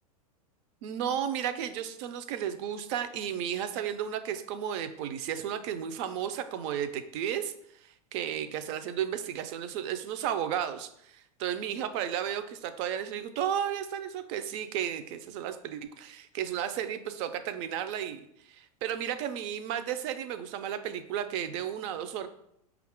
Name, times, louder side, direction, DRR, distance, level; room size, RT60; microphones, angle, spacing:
voice 1, 0.8-7.5 7.8-22.3, right 9 dB, 50° right, 10 dB, 0.5 m, -33 dB
5.2 x 2.4 x 3.6 m, 0.73 s
hypercardioid pair, 115°, 19 cm